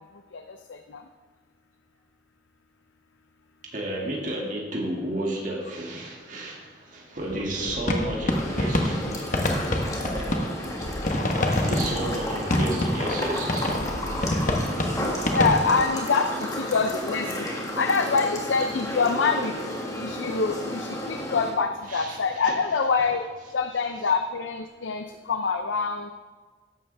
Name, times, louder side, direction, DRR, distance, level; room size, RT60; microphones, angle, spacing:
voice 1, 0.7-1.0 7.6-7.7 11.2-11.6 15.3-17.5 17.8-19.5 20.0-23.2 23.5-26.1, left 4 dB, 90° left, 7 dB, 0.6 m, -25 dB
voice 2, 3.6-9.1 11.4-13.7 21.9-22.5, right 1 dB, 45° right, -3 dB, 2.3 m, -32 dB
sound 1, 7.2-15.9, left 1 dB, 45° left, 1.2 m, -27 dB
sound 2, 8.3-21.5, left 1 dB, 20° left, 1.7 m, -32 dB
14.5 x 11.0 x 3.5 m, 1.4 s
head